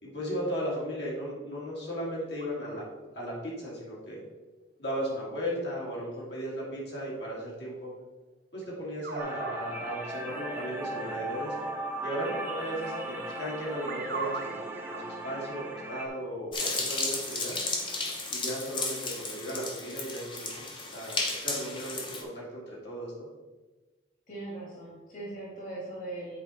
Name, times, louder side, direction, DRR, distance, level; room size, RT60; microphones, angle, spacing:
voice 1, 0.0-2.8 3.1-4.2 4.8-7.9 8.5-11.6 12.0-17.6 18.3-23.3, equal, 65° left, -5 dB, 2.3 m, -36 dB
sound 1, 2.4-2.8 8.6-8.7 9.0-9.6 10.6-10.7 13.9-15.3 15.9-16.1, right 4 dB, 50° right, 0.6 m, -38 dB
sound 2, 9.2-16.1, right 1 dB, 10° right, 0.7 m, -37 dB
sound 3, 16.5-22.2, left 3 dB, 25° left, 0.9 m, -33 dB
voice 2, 24.3-26.4, right 2 dB, 45° left, -5 dB, 2.0 m, -40 dB
7.9 x 4.5 x 4.1 m, 1.2 s
head